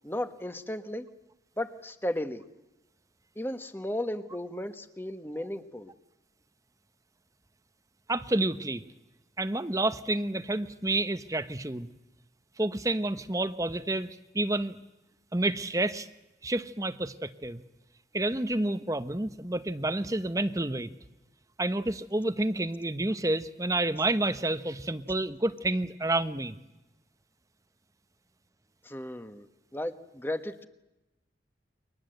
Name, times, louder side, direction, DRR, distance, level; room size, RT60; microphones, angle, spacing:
voice 1, 0.0-1.0 1.6-2.4 3.4-5.9 28.8-29.5 29.7-30.7, left 1 dB, 10° left, 9 dB, 1.3 m, -35 dB
voice 2, 8.1-8.8 9.4-11.9 12.6-14.8 15.3-16.1 16.4-17.6 18.1-20.9 21.6-26.6, right 2 dB, 20° right, 12 dB, 0.9 m, -29 dB
30.0 x 24.0 x 7.9 m, 0.99 s
head